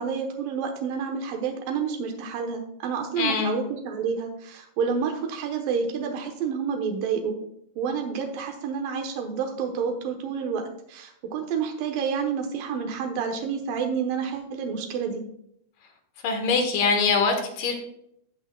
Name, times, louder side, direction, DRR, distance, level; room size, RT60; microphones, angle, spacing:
voice 1, 0.0-7.4 7.8-10.6 10.9-15.2, right 6 dB, 85° right, 3 dB, 2.7 m, -29 dB
voice 2, 3.1-3.6 16.2-17.7, left 4 dB, 75° left, 3 dB, 3.0 m, -23 dB
17.0 x 5.7 x 2.2 m, 0.72 s
omnidirectional pair, 3.9 m